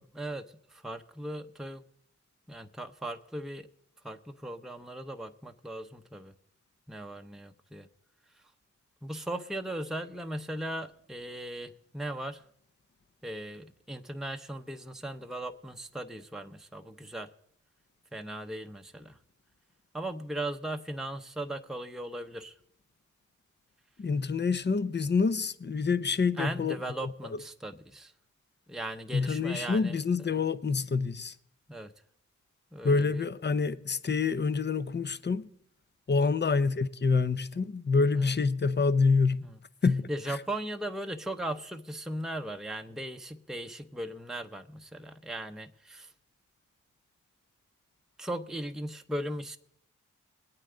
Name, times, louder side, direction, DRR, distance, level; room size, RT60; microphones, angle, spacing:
voice 1, 0.0-1.8 2.5-3.7 4.0-6.3 6.9-7.9 9.0-12.4 13.2-17.3 18.1-19.2 19.9-22.6 26.4-28.1 28.7-30.4 31.7-31.9 32.7-33.3 38.2-38.3 39.4-39.5 40.1-46.1 48.2-49.6, right 1 dB, ahead, 0.8 m, -38 dB
voice 2, 24.0-26.8 27.0-27.1 29.1-31.3 32.8-35.5 36.1-39.4 39.8-40.0 40.3-40.4, left 4 dB, 35° left, 0.7 m, -27 dB
21.0 x 8.9 x 3.9 m
supercardioid pair, 40°, 31 cm